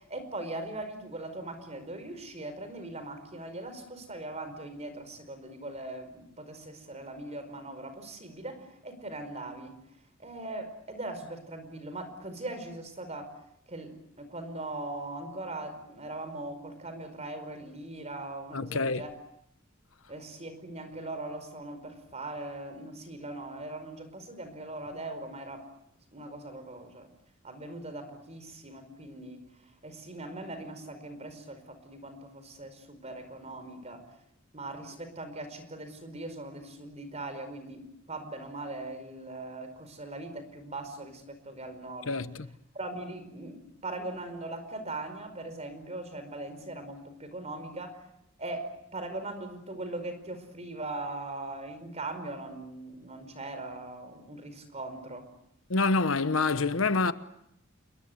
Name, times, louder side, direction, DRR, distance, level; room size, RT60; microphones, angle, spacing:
voice 1, 0.0-9.8 10.2-13.3 13.7-19.1 20.1-25.7 26.1-27.1 27.4-29.4 29.8-34.1 34.5-42.2 42.7-48.0 48.4-55.3, right 2 dB, 35° right, 4.9 m, -40 dB
voice 2, 18.5-19.0 42.1-42.3 55.7-57.1, left 3 dB, 80° left, 1.1 m, -26 dB
29.0 x 22.0 x 7.9 m
head